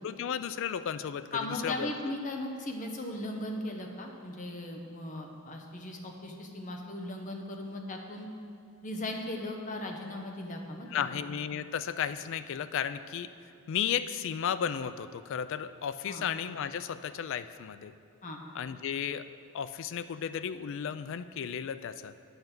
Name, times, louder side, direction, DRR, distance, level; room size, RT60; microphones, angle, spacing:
voice 1, 0.0-1.9 10.9-13.3 13.7-17.9 18.5-19.3 19.5-22.1, left 8 dB, 55° left, 12 dB, 0.3 m, -34 dB
voice 2, 1.3-8.3 8.8-11.2 16.1-16.3 18.2-18.4, left 1 dB, 35° left, 2 dB, 0.8 m, -37 dB
8.9 x 5.6 x 6.0 m, 2.4 s
head